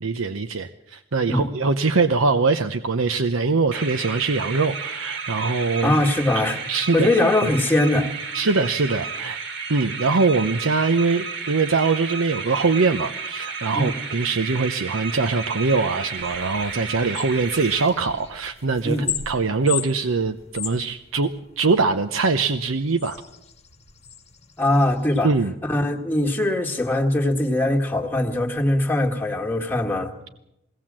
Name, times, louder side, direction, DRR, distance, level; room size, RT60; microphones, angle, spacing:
voice 1, 0.0-5.9 6.7-7.1 8.3-9.4 9.7-23.2 25.2-25.5, right 4 dB, 80° right, 7 dB, 0.8 m, -22 dB
sound 1, 3.7-18.4, right 5 dB, 55° right, 2.2 m, -32 dB
voice 2, 5.8-6.6 6.9-8.1 13.8-14.0 18.8-19.1 24.6-25.3 25.6-30.1, left 1 dB, 10° left, 1 dB, 1.7 m, -21 dB
sound 2, 16.2-25.3, left 8 dB, 30° left, 1.3 m, -37 dB
21.5 x 17.0 x 7.5 m, 0.86 s
head